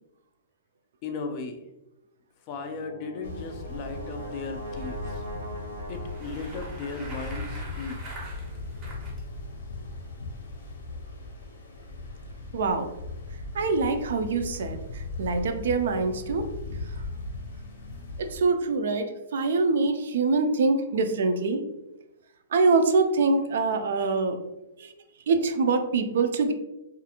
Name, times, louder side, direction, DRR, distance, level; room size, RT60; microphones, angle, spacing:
voice 1, 1.0-1.6 2.5-5.2 5.9-8.0, left 4 dB, 30° left, 5 dB, 0.3 m, -36 dB
Brass instrument, 2.5-6.8, equal, 90° right, 0.7 m, -41 dB
sound 1, 3.2-18.4, left 2 dB, 70° left, 0.7 m, -38 dB
Bicycle, 5.9-9.2, right 2 dB, 20° right, 0.6 m, -44 dB
voice 2, 12.5-12.9 13.5-16.4 18.2-21.6 22.5-24.4 24.8-24.9 25.3-26.5, right 3 dB, 65° right, 7 dB, 0.3 m, -24 dB
2.5 x 2.4 x 2.7 m, 0.94 s
hypercardioid pair, 170°, 0 cm